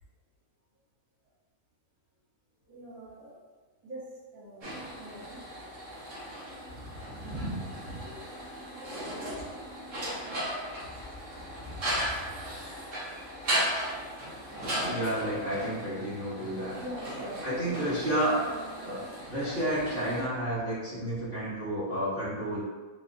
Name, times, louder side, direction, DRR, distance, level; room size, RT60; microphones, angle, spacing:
voice 1, 2.7-3.4 3.8-4.0 4.3-4.7 5.0-5.5 9.5-9.6 16.7-17.7, right 1 dB, 90° right, -12 dB, 2.0 m, -43 dB
sound 1, 4.6-20.2, equal, 60° right, 1.4 m, -36 dB
voice 2, 14.8-16.8 17.4-18.5 18.8-22.6, right 1 dB, 45° right, -11 dB, 1.0 m, -31 dB
3.6 x 2.9 x 2.5 m, 1.3 s
omnidirectional pair, 1.5 m